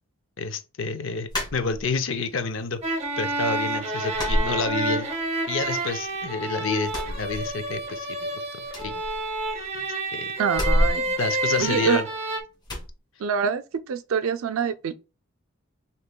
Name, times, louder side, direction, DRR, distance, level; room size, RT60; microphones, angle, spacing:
voice 1, 0.4-2.8 3.2-5.1 5.5-9.0 10.1-10.3 11.2-12.0, left 4 dB, 65° left, 0.6 m, -29 dB
sound 1, 1.3-2.2 2.6-3.3 3.5-3.7 4.1-5.3 5.6-6.4 6.8-8.0 8.2-8.3 8.6-9.8 10.5-12.1 12.6-12.9, equal, 20° left, 2.4 m, -29 dB
sound 2, 2.8-12.4, right 2 dB, 30° right, 0.7 m, -29 dB
voice 2, 10.4-11.1 11.6-12.0 13.2-14.9, right 6 dB, 80° right, 0.4 m, -25 dB
6.5 x 2.9 x 2.2 m
head